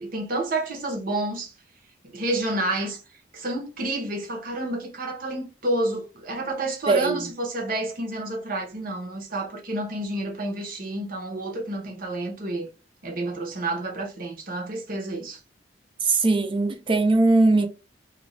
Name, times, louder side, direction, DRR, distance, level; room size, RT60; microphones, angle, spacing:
voice 1, 0.0-1.5 2.0-3.0 3.3-12.7 13.0-15.4, right 2 dB, 50° right, 0.8 m, -29 dB
voice 2, 6.9-7.3 16.0-17.7, right 3 dB, 30° right, 0.5 m, -20 dB
2.5 x 2.3 x 3.1 m
head